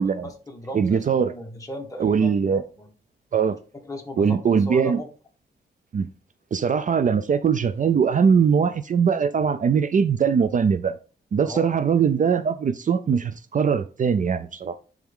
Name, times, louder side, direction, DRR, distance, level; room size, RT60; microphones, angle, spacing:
voice 1, 0.0-2.9 3.8-4.4 4.7-5.1 11.4-12.1, left 1 dB, 20° left, 1.7 m, -37 dB
voice 2, 0.7-1.3 2.0-2.6 3.3-3.6 4.2-5.0 5.9-6.1 6.5-11.0 11.3-14.8, right 6 dB, 45° right, 0.5 m, -21 dB
10.5 x 3.5 x 3.6 m
wide cardioid pair, 110°, 18 cm